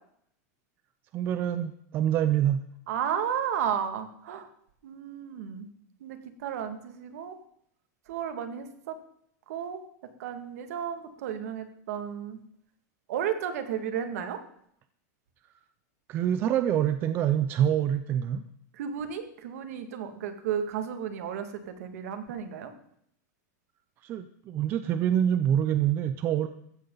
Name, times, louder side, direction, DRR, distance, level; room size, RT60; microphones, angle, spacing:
voice 1, 1.1-2.6 16.1-18.4 24.0-26.5, right 10 dB, 20° right, 11 dB, 0.5 m, -26 dB
voice 2, 2.9-4.5 4.8-5.7 6.0-6.2 6.4-7.4 8.1-9.0 9.5-9.8 10.2-12.4 13.1-14.4 18.8-22.7, right 8 dB, 55° right, 8 dB, 2.1 m, -33 dB
15.0 x 15.0 x 3.9 m, 0.69 s
supercardioid pair, 175°, 10 cm